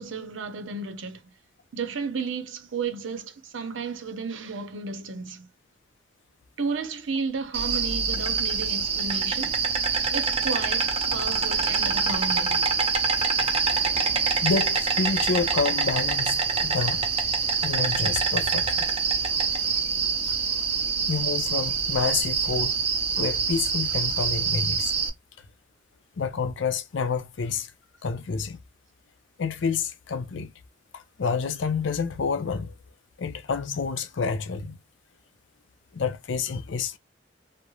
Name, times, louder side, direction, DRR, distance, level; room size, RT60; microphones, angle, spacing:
voice 1, 0.0-1.3 1.7-5.5 6.6-9.6 10.1-12.6, right 4 dB, 85° right, 0.6 m, -33 dB
Insect, 7.5-25.1, right 5 dB, 30° right, 0.5 m, -25 dB
voice 2, 14.4-17.1 17.6-18.9 20.3-20.4 21.1-22.8 23.2-24.9 26.2-27.7 28.0-28.6 29.4-30.5 30.9-32.7 33.2-34.8 35.9-37.0, left 5 dB, 75° left, 0.5 m, -28 dB
3.0 x 2.1 x 2.3 m
head